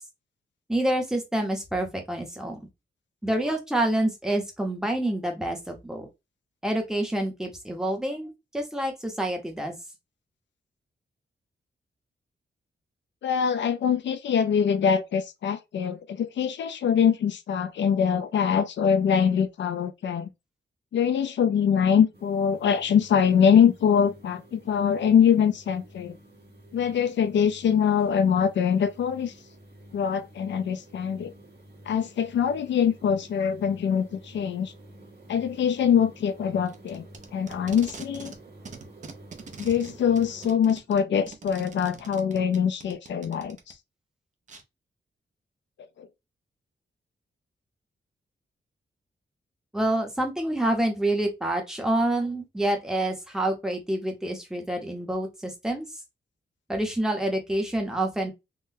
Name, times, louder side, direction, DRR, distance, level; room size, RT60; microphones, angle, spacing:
voice 1, 0.7-2.7 3.2-6.1 6.6-9.7 49.7-55.9 56.7-58.3, right 1 dB, 5° right, 0.7 m, -27 dB
voice 2, 13.2-20.3 20.9-26.2 26.7-29.3 29.9-31.3 31.9-34.7 35.3-37.0 37.3-38.3 39.6-43.7 46.0-46.1, left 7 dB, 70° left, 0.4 m, -23 dB
sound 1, 22.1-40.6, right 1 dB, 55° right, 1.4 m, -50 dB
Packing tape duct tape, 36.7-38.4 38.7-43.7 44.5-44.6, right 5 dB, 40° right, 0.5 m, -44 dB
3.7 x 2.1 x 2.6 m
wide cardioid pair, 180°, 19 cm